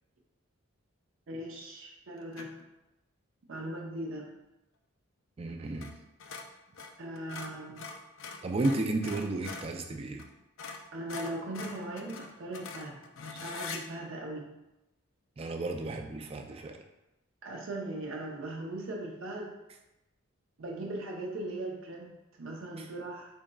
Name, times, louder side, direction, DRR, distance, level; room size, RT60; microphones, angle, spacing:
voice 1, 1.3-2.5 3.5-4.3 7.0-7.9 10.9-13.0 13.3-14.5 17.4-19.5 20.6-23.3, right 1 dB, 70° right, -1 dB, 0.6 m, -39 dB
sound 1, 2.3-2.7 5.7-5.9 6.2-9.8 10.2-10.3 10.6-13.8, left 4 dB, 70° left, 0.4 m, -43 dB
voice 2, 5.4-5.9 8.4-10.2 15.4-16.8, right 2 dB, 30° right, 4 dB, 0.3 m, -33 dB
3.9 x 3.6 x 2.2 m, 0.94 s
head